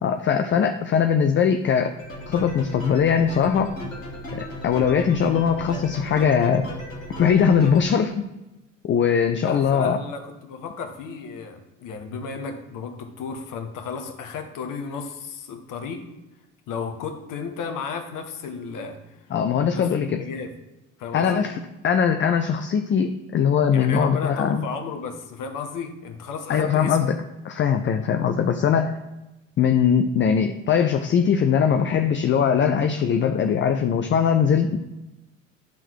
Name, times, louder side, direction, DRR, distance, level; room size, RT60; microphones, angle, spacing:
voice 1, 0.0-1.9 2.3-3.7 4.3-6.7 7.2-8.3 8.8-10.0 19.3-20.2 21.1-24.6 26.5-27.2 27.4-29.0 29.6-34.8, left 7 dB, 30° left, 6 dB, 0.6 m, -21 dB
sound 1, 2.0-7.8, equal, 90° left, 2.1 m, -35 dB
voice 2, 9.4-16.0 16.7-19.1 19.7-20.5 21.0-21.5 23.7-27.0, left 5 dB, 55° left, 5 dB, 1.5 m, -34 dB
10.5 x 3.9 x 4.7 m, 1.0 s
figure-of-eight pair, 50°, 39 cm